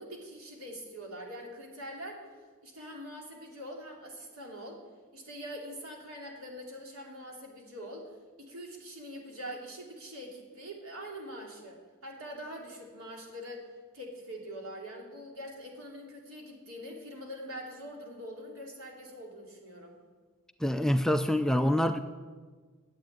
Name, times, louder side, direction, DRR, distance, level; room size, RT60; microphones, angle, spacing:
voice 1, 0.0-2.2 2.6-4.8 5.1-8.1 8.4-13.6 13.9-20.0, equal, 80° right, 0 dB, 3.1 m, -44 dB
voice 2, 20.6-22.0, left 1 dB, ahead, 8 dB, 0.4 m, -26 dB
12.0 x 8.4 x 9.2 m, 1.5 s
head